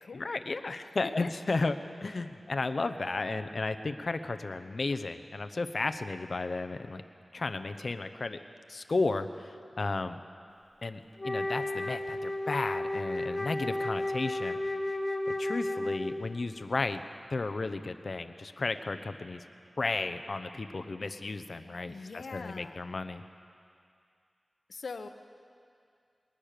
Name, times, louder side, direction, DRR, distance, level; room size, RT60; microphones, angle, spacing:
voice 1, 0.1-1.8 2.0-7.0 7.3-8.4 8.7-10.2 10.8-14.6 15.4-17.0 17.3-19.4 19.8-23.2, left 3 dB, 60° left, 9 dB, 1.0 m, -33 dB
Wind instrument woodwind instrument, 11.2-16.4, left 1 dB, 35° left, 1.3 m, -33 dB
voice 2, 21.9-22.8 24.7-25.1, left 4 dB, 85° left, 7 dB, 1.0 m, -42 dB
22.5 x 19.5 x 6.8 m, 2.4 s
wide cardioid pair, 70°, 0 cm